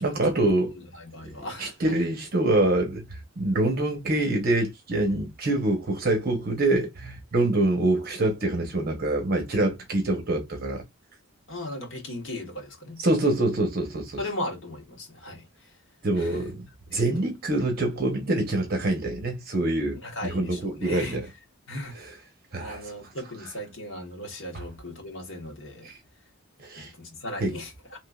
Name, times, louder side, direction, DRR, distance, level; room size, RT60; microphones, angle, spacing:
voice 1, 0.0-0.7 1.4-10.8 13.0-14.2 16.0-16.6 16.9-21.3 21.9-22.1 22.5-22.9 24.5-24.6 26.6-26.9 27.4-27.6, right 2 dB, 45° right, 1.0 m, -25 dB
voice 2, 0.6-2.0 11.5-13.0 14.2-15.4 16.2-16.4 16.9-17.1 20.0-21.2 21.7-22.0 22.6-25.9 26.8-28.0, left 1 dB, 60° left, 1.3 m, -37 dB
3.7 x 2.9 x 2.4 m
head